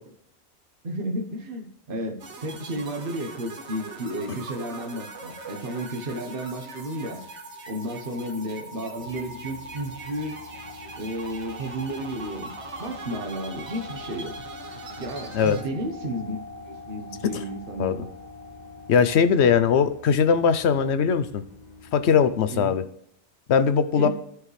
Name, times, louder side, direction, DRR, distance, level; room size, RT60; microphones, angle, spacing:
voice 1, 0.8-7.2 7.7-10.3 11.0-12.5 12.8-14.3 14.9-16.4 16.6-18.0 22.5-22.8 24.0-24.1, right 1 dB, 50° right, 2 dB, 1.3 m, -32 dB
sound 1, 2.2-15.6, right 4 dB, 80° right, 1.4 m, -43 dB
sound 2, 2.6-20.4, left 1 dB, 10° left, 1.4 m, -44 dB
sound 3, 9.0-22.4, left 3 dB, 55° left, 1.5 m, -48 dB
voice 2, 18.9-21.4 21.9-22.8 23.5-24.1, left 6 dB, 75° left, 12 dB, 1.0 m, -20 dB
14.5 x 5.0 x 3.2 m, 0.72 s
omnidirectional pair, 1.2 m